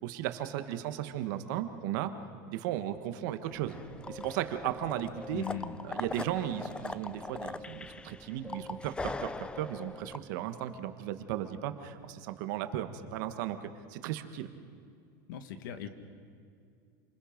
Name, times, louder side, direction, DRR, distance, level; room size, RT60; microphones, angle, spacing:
voice 1, 0.0-2.1 2.5-3.8 4.1-5.4 5.8-13.6 13.9-14.5, right 12 dB, 70° right, 9 dB, 1.4 m, -35 dB
sound 1, 3.5-10.2, left 3 dB, 10° left, 0.4 m, -41 dB
voice 2, 5.3-5.8 15.3-15.9, left 9 dB, 80° left, 9 dB, 1.7 m, -39 dB
28.0 x 21.0 x 5.3 m, 2.3 s
supercardioid pair, 140°, 11 cm